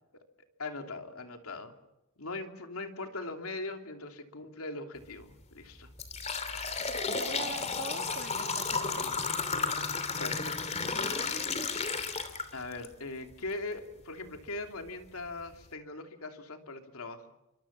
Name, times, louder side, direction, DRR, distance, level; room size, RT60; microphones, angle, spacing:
voice 1, 0.6-1.7 2.2-5.9 10.2-10.9 12.5-17.3, left 2 dB, 85° left, 5 dB, 2.8 m, -40 dB
sound 1, 5.0-5.2 5.7-12.9 13.3-13.4 14.3-14.4 14.9-15.0 15.4-15.6, left 4 dB, 30° left, 2.8 m, -33 dB
voice 2, 7.0-9.2, right 4 dB, 45° right, 5 dB, 2.2 m, -42 dB
28.0 x 24.0 x 7.2 m, 0.91 s
head